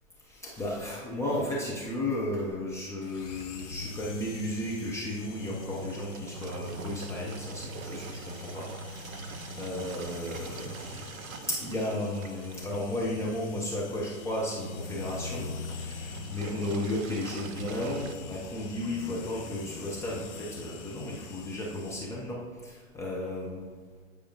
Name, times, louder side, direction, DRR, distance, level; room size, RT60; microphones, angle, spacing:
voice 1, 0.3-23.7, left 1 dB, 5° left, -5 dB, 0.4 m, -34 dB
sound 1, 3.0-22.0, left 5 dB, 60° left, 0.9 m, -45 dB
Engine, 3.0-18.2, right 3 dB, 85° right, 0.6 m, -43 dB
9.0 x 4.8 x 2.6 m, 1.5 s
hypercardioid pair, 120°, 40 cm